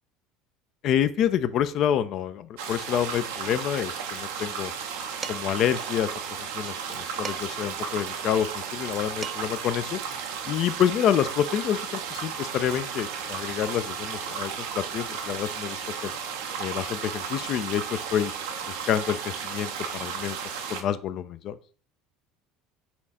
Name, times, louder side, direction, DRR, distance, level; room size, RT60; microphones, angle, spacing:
voice 1, 0.8-4.7 5.3-6.1 6.5-10.0 10.5-16.1 16.6-18.3 18.9-20.4 20.7-21.6, left 10 dB, 50° left, 12 dB, 0.3 m, -27 dB
sound 1, 2.6-20.8, right 6 dB, 70° right, 0.6 m, -34 dB
Dishes pots and pans, 5.2-5.7 7.2-7.7 8.9-9.0 9.2-9.7, right 5 dB, 30° right, 0.4 m, -38 dB
4.3 x 2.4 x 4.1 m, 0.42 s
hypercardioid pair, 70°, 0 cm